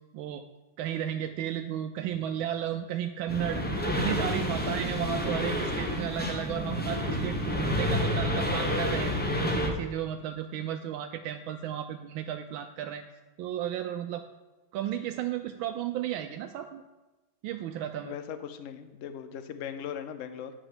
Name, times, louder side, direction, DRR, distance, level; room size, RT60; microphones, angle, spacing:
voice 1, 0.8-9.1 9.4-13.0 13.4-14.2 14.7-16.8 17.4-18.1, right 10 dB, 90° right, 6 dB, 1.4 m, -34 dB
sound 1, 3.3-9.7, left 1 dB, 10° left, 0.5 m, -29 dB
voice 2, 18.0-20.5, left 8 dB, 65° left, 9 dB, 0.8 m, -39 dB
9.4 x 5.0 x 7.5 m, 1.1 s
omnidirectional pair, 2.1 m